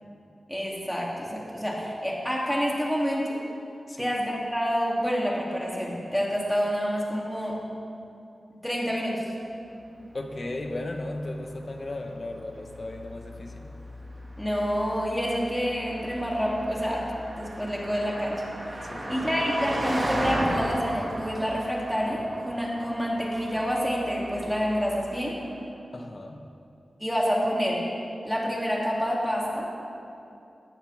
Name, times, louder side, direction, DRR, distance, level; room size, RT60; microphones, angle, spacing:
voice 1, 0.5-3.4 4.0-7.6 8.6-9.2 14.4-17.1 17.4-18.4 18.7-25.3 27.0-27.8 28.2-29.7, equal, 5° left, -5 dB, 3.1 m, -28 dB
Car passing by, 9.8-25.5, right 1 dB, 35° right, 2.2 m, -36 dB
voice 2, 10.1-13.7 18.8-19.3 25.9-26.5, left 1 dB, 40° left, 3 dB, 1.4 m, -36 dB
19.0 x 14.5 x 3.7 m, 2.7 s
wide cardioid pair, 120°, 0 cm